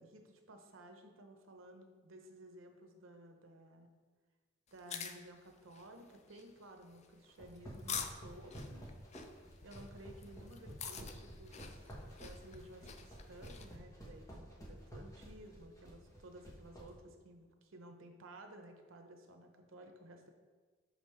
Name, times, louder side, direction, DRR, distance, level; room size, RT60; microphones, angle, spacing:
voice 1, 0.0-3.9 4.7-8.9 9.6-20.3, right 1 dB, 90° right, 4 dB, 0.8 m, -55 dB
sound 1, 4.7-13.8, left 7 dB, 35° left, 0.4 m, -48 dB
sound 2, 7.3-16.9, equal, 15° left, 1.2 m, -50 dB
5.9 x 5.2 x 3.2 m, 1.4 s
head